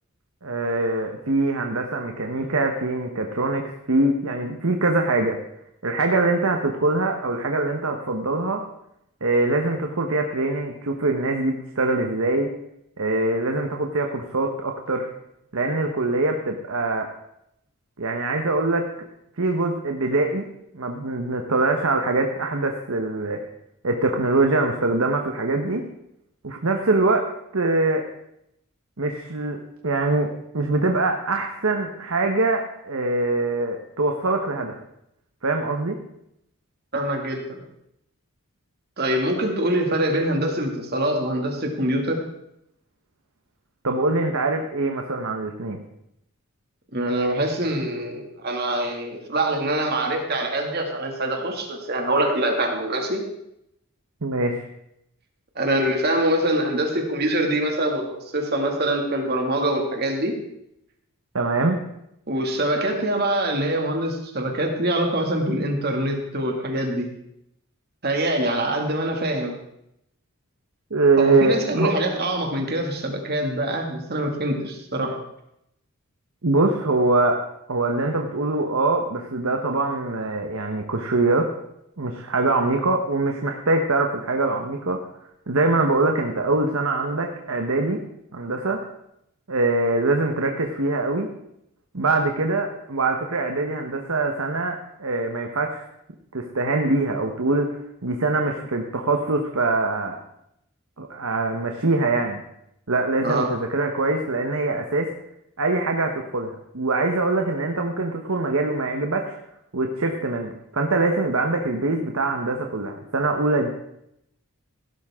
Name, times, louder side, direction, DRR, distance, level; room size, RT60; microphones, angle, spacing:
voice 1, 0.4-5.4 5.8-8.6 9.2-12.5 13.0-15.1 15.5-17.1 18.0-19.1 19.4-20.5 20.7-23.4 23.8-25.8 26.4-27.2 27.5-28.0 29.0-30.3 30.5-34.7 35.4-36.0 43.8-45.8 54.2-54.7 61.3-61.8 70.9-71.9 76.4-77.4 77.7-81.5 82.0-85.0 85.5-88.0 88.3-88.8 89.5-91.3 91.9-95.9 96.3-97.7 98.0-100.2 101.0-102.4 102.9-105.1 105.6-109.4 109.7-113.7, right 2 dB, 70° right, 3 dB, 1.2 m, -23 dB
voice 2, 36.9-37.6 39.0-42.2 46.9-53.2 55.6-60.4 62.3-67.1 68.0-69.6 71.2-75.2 103.2-103.5, right 1 dB, 45° right, 2 dB, 2.3 m, -24 dB
16.5 x 12.0 x 3.7 m, 0.80 s
head